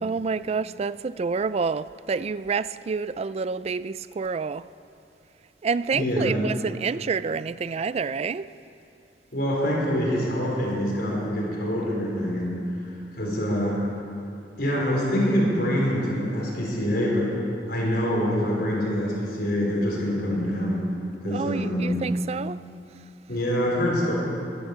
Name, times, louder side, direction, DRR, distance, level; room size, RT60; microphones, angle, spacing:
voice 1, 0.0-4.7 5.6-8.5 21.3-22.6, right 5 dB, 35° right, 16 dB, 0.3 m, -28 dB
voice 2, 5.9-6.4 9.3-12.6 13.1-13.8 14.6-17.3 17.7-20.9 21.2-22.0 23.3-24.1, equal, 60° left, -4 dB, 4.8 m, -25 dB
16.5 x 11.5 x 6.9 m, 2.7 s
head